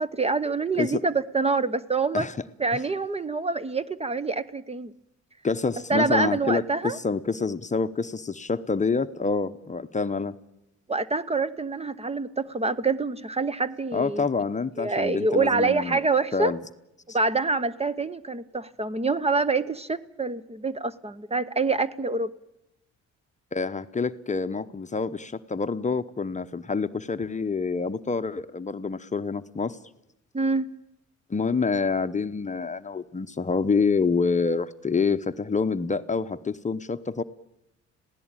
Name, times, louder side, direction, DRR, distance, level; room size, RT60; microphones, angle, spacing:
voice 1, 0.0-2.3 2.6-4.9 5.9-7.0 10.9-14.2 14.8-16.5 17.1-22.3 30.3-30.7, right 3 dB, 20° right, 16 dB, 0.8 m, -26 dB
voice 2, 5.4-10.3 13.9-16.0 16.3-16.6 23.5-29.8 31.3-37.2, left 4 dB, 25° left, 11 dB, 0.8 m, -27 dB
26.5 x 16.5 x 8.9 m, 0.89 s
cardioid pair, 90°, 30 cm